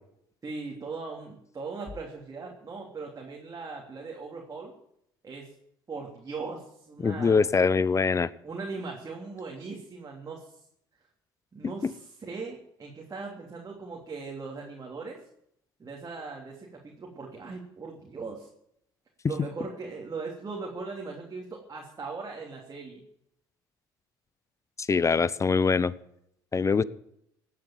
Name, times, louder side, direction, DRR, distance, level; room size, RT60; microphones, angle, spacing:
voice 1, 0.4-4.7 5.2-5.5 5.9-7.4 8.4-10.5 11.5-15.2 15.8-18.5 19.3-23.0, right 4 dB, 35° right, -1 dB, 3.2 m, -39 dB
voice 2, 7.0-8.3 11.8-11.9 24.8-25.9 26.5-26.8, left 5 dB, 30° left, 19 dB, 0.7 m, -23 dB
16.5 x 7.8 x 9.0 m, 0.75 s
hypercardioid pair, 65°, 11 cm